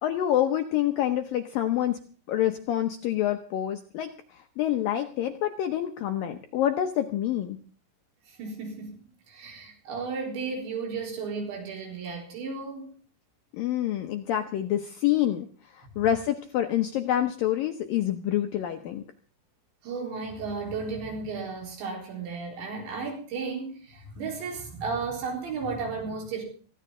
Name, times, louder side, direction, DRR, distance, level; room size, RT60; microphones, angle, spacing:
voice 1, 0.0-2.0 2.3-7.6 13.5-19.0, left 11 dB, 75° left, 6 dB, 2.1 m, -27 dB
voice 2, 8.3-13.0 19.8-26.4, right 4 dB, 80° right, 1 dB, 6.3 m, -34 dB
19.0 x 15.5 x 3.8 m, 0.42 s
omnidirectional pair, 5.2 m